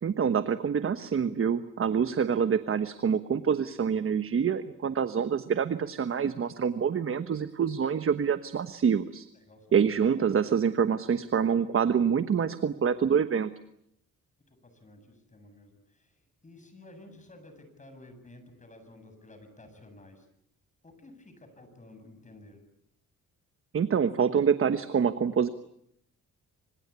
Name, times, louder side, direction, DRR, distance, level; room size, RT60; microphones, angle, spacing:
voice 1, 0.0-9.3 9.7-13.5 23.7-25.5, right 7 dB, 40° right, 11 dB, 1.2 m, -26 dB
voice 2, 9.3-10.0 14.5-20.3 20.8-22.6, left 2 dB, 25° left, 8 dB, 7.8 m, -53 dB
26.5 x 26.0 x 8.4 m, 0.74 s
cardioid pair, 115°, 32 cm